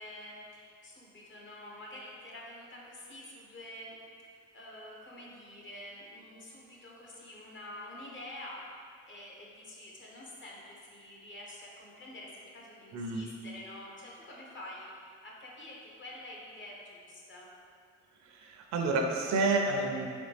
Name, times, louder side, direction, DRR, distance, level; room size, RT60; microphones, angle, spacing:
voice 1, 0.0-4.0 4.2-17.5, left 1 dB, 40° left, -3 dB, 1.0 m, -47 dB
voice 2, 18.4-20.1, right 3 dB, 65° right, 2 dB, 0.6 m, -29 dB
4.1 x 3.3 x 3.3 m, 2.2 s
cardioid pair, 90°, 30 cm